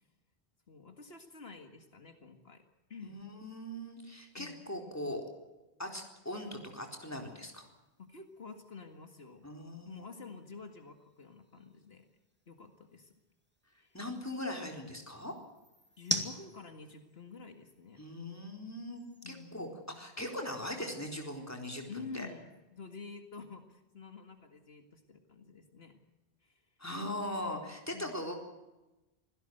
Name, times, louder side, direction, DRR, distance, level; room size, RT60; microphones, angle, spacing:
voice 1, 0.7-2.6 2.9-3.2 4.3-4.6 8.0-9.5 9.9-12.1 12.5-13.1 13.7-14.0 16.0-18.0 19.2-19.8 21.9-26.0 26.4-26.6 27.9-28.2, left 4 dB, 75° left, 6 dB, 2.2 m, -49 dB
voice 2, 3.1-5.2 5.8-7.7 9.4-10.0 13.9-15.3 18.0-19.7 20.0-22.3 26.8-28.4, left 1 dB, 15° left, 3 dB, 4.1 m, -40 dB
sound 1, 6.3-20.5, right 1 dB, 10° right, 2.5 m, -46 dB
26.0 x 17.0 x 7.9 m, 1.0 s
omnidirectional pair, 1.1 m